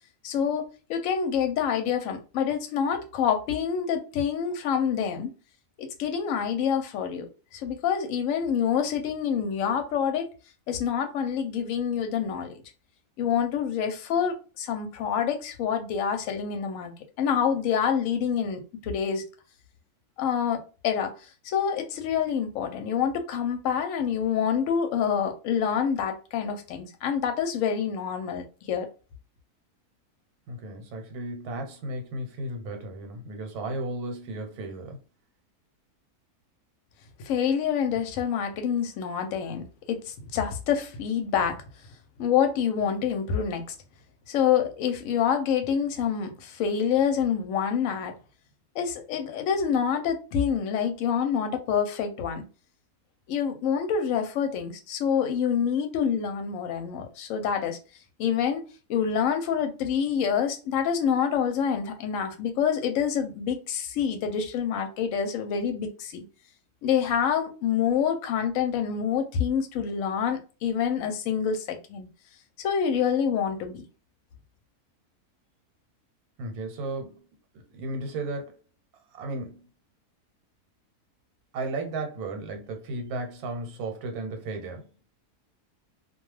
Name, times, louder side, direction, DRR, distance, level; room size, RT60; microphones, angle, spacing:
voice 1, 0.2-5.3 5.8-7.3 7.5-10.3 10.7-12.6 13.2-16.9 17.2-19.2 20.2-21.1 21.4-28.9 37.2-41.6 42.2-43.6 44.3-48.1 48.7-52.4 53.3-57.8 58.2-58.6 58.9-66.2 66.8-72.1 72.6-73.8, left 7 dB, 70° left, 0.9 m, -27 dB
voice 2, 30.5-35.0 76.4-77.3 77.5-78.6 79.1-79.7 81.5-84.9, right 2 dB, 80° right, 1.2 m, -34 dB
2.4 x 2.2 x 3.1 m
omnidirectional pair, 1.6 m